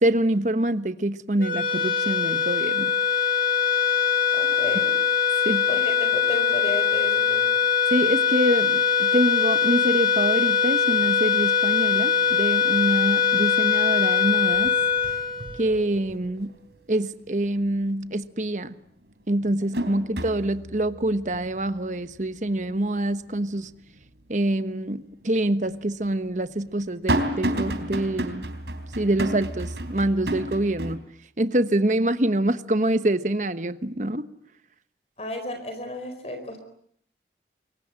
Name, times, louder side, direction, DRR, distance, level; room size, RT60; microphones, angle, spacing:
voice 1, 0.0-2.9 5.4-5.6 7.9-14.8 15.6-16.5 16.9-18.7 19.3-23.7 24.3-28.5 29.0-31.0 31.4-34.3, right 1 dB, 45° right, 12 dB, 1.2 m, -25 dB
sound 1, 1.4-16.0, left 7 dB, 55° left, 4.6 m, -22 dB
voice 2, 4.3-4.9 5.7-7.5 35.2-36.6, left 1 dB, 35° left, 6 dB, 4.4 m, -33 dB
sound 2, 11.8-11.9 12.3-12.8 13.2-14.0 14.3-16.5 16.9-17.0 18.5-18.6 19.1-24.2 24.6-24.7 25.6-31.0, right 1 dB, 75° right, 3.6 m, -32 dB
27.5 x 23.0 x 9.0 m, 0.66 s
head